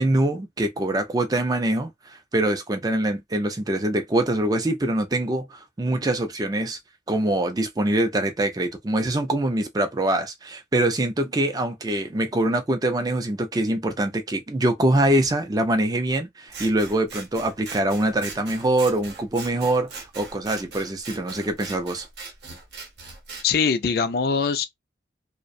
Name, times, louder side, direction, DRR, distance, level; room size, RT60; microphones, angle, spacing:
voice 1, 0.0-6.8 7.1-22.1, right 1 dB, 20° right, 0.4 m, -24 dB
Scissors, 16.5-23.5, right 4 dB, 65° right, 0.7 m, -40 dB
voice 2, 23.4-24.7, left 5 dB, 55° left, 0.4 m, -22 dB
2.4 x 2.1 x 2.5 m
head